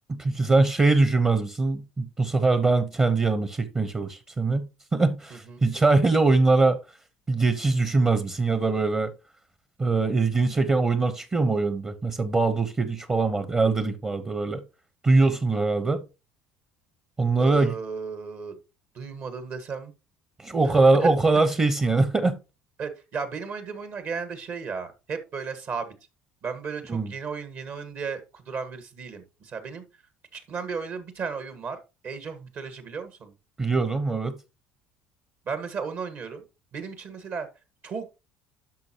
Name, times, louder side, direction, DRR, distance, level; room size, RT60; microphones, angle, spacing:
voice 1, 0.1-6.8 7.3-9.1 9.8-14.6 15.0-16.0 17.2-17.7 20.4-22.4 26.9-27.1 33.6-34.4, right 3 dB, 25° right, 0.9 m, -22 dB
voice 2, 5.3-5.7 17.4-18.6 18.9-19.9 20.6-20.7 21.0-21.1 22.8-25.9 26.4-29.8 30.3-33.3 35.5-36.4 36.7-37.5 37.8-38.1, right 5 dB, 55° right, 1.5 m, -35 dB
10.5 x 6.1 x 2.9 m
supercardioid pair, 80°, 5 cm